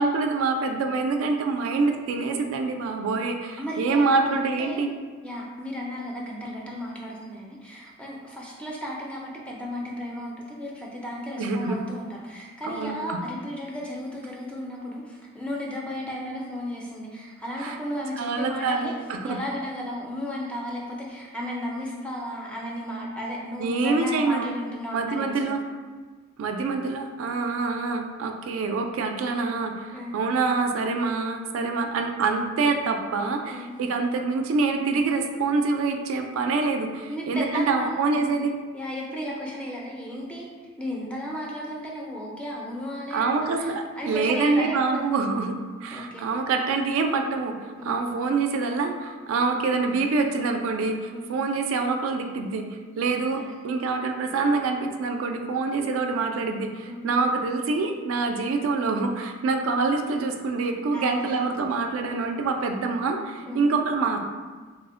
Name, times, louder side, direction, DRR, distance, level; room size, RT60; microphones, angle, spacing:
voice 1, 0.0-4.9 11.4-11.8 12.7-13.2 17.6-17.8 18.2-19.4 23.6-24.5 24.9-25.6 26.4-38.5 43.1-52.6 52.9-64.2, right 4 dB, 85° right, 4 dB, 0.3 m, -26 dB
voice 2, 3.6-4.8 5.2-18.9 19.2-25.6 29.9-30.1 33.5-33.7 37.1-38.3 38.7-40.5 40.8-43.7 44.0-45.1 45.9-46.5 47.8-48.0 51.1-51.3 53.3-53.5 56.9-57.1 60.9-61.4 63.5-63.7, equal, 5° left, -3 dB, 0.3 m, -34 dB
2.8 x 2.1 x 3.6 m, 1.4 s
head